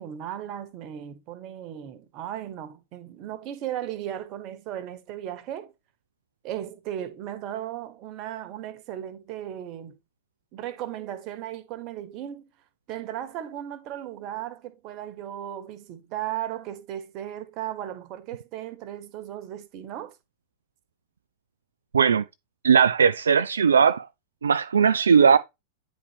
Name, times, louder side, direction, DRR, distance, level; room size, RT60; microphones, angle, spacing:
voice 1, 0.0-5.7 6.4-9.9 10.5-12.4 12.9-20.1, right 11 dB, 40° right, 1.3 m, -36 dB
voice 2, 21.9-22.2 22.6-24.1 24.4-25.4, right 6 dB, 70° right, 0.3 m, -18 dB
9.7 x 4.2 x 3.3 m
figure-of-eight pair, 90°, 0 cm